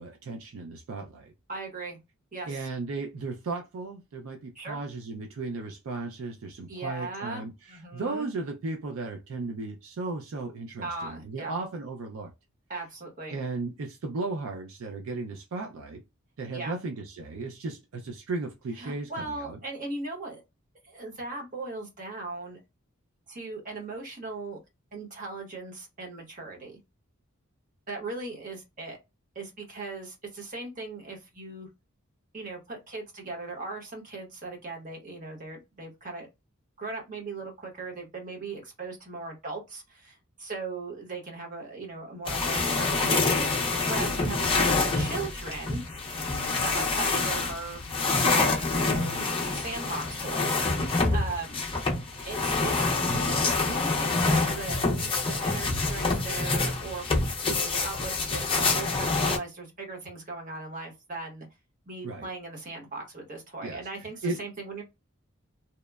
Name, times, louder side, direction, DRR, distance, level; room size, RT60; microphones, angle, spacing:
voice 1, 0.0-1.3 2.5-12.3 13.3-16.0 16.4-19.6 42.5-43.3 44.0-44.1 62.0-62.3 63.6-63.9 64.2-64.4, right 3 dB, 75° right, 0.4 m, -35 dB
voice 2, 1.5-2.0 2.3-2.7 4.5-4.8 6.7-8.3 10.8-11.6 12.7-13.4 16.5-16.8 18.8-20.4 20.8-22.6 23.3-24.6 24.9-26.8 27.9-29.0 29.3-31.7 32.3-36.3 36.8-45.8 46.6-51.6 52.2-57.0 57.4-61.5 61.9-64.8, right 3 dB, 40° right, 1.0 m, -38 dB
sound 1, 42.3-59.4, left 3 dB, 25° left, 0.5 m, -27 dB
2.9 x 2.1 x 2.2 m
head